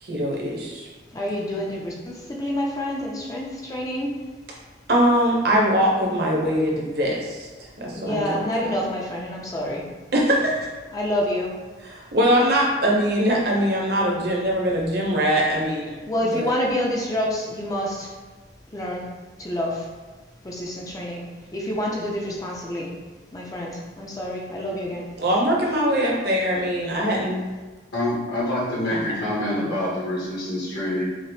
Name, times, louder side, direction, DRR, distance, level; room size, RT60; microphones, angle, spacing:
voice 1, 0.0-0.9 4.9-7.5 7.8-8.4 10.1-10.5 11.8-16.0 16.3-16.5 25.2-27.4 28.9-29.0, equal, 60° right, -3 dB, 0.9 m, -22 dB
voice 2, 1.1-4.2 7.8-9.8 10.9-11.5 16.1-18.1 18.7-19.1 19.4-19.9 20.4-21.2 21.5-22.9 23.3-25.1, left 1 dB, 20° left, -2 dB, 0.5 m, -28 dB
voice 3, 27.9-31.0, left 1 dB, 60° left, -7 dB, 1.1 m, -26 dB
5.5 x 2.0 x 3.1 m, 1.3 s
head